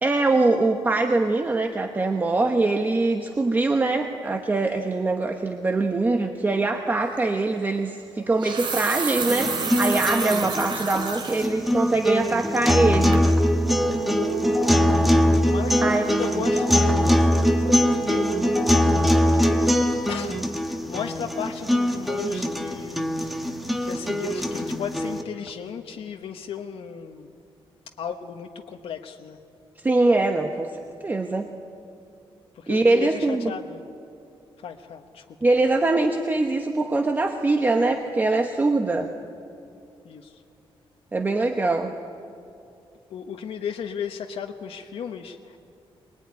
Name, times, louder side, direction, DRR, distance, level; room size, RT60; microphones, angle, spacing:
voice 1, 0.0-13.3 15.8-16.0 29.8-31.5 32.7-33.5 35.4-39.1 41.1-41.9, right 2 dB, 20° right, 5 dB, 1.1 m, -23 dB
sound 1, 7.0-7.2 8.2-11.5 12.0-12.1 12.6-12.9 13.1-13.3, right 5 dB, 55° right, 2.7 m, -30 dB
sound 2, 9.2-25.2, left 1 dB, ahead, 1.4 m, -22 dB
Brass instrument, 13.4-19.8, right 6 dB, 85° right, 1.1 m, -36 dB
voice 2, 15.2-18.3 19.1-23.5 23.8-27.3 27.9-29.4 32.5-33.9 34.6-35.4 40.0-40.4 43.1-45.6, left 7 dB, 85° left, 3 dB, 1.2 m, -36 dB
24.5 x 21.0 x 9.8 m, 2.6 s
wide cardioid pair, 175°, 10 cm